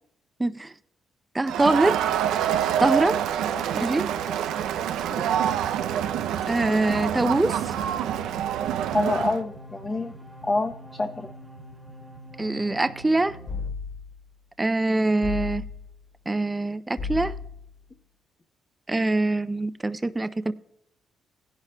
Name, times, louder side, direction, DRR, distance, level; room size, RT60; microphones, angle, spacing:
voice 1, 0.4-0.7 1.3-2.0 2.8-3.2 3.7-4.1 6.5-7.6 12.4-13.4 14.6-15.6 16.3-17.3 18.9-20.5, right 2 dB, 15° right, 0.4 m, -23 dB
Crowd, 1.5-9.4, right 10 dB, 85° right, 0.4 m, -26 dB
sound 1, 5.1-13.7, equal, ahead, 1.3 m, -45 dB
voice 2, 8.9-10.1 10.4-11.3, left 2 dB, 25° left, 0.7 m, -27 dB
sound 2, 13.5-14.2 15.2-16.0 17.0-17.7, left 5 dB, 65° left, 2.4 m, -33 dB
17.0 x 10.5 x 2.2 m
cardioid pair, 90°, 0 cm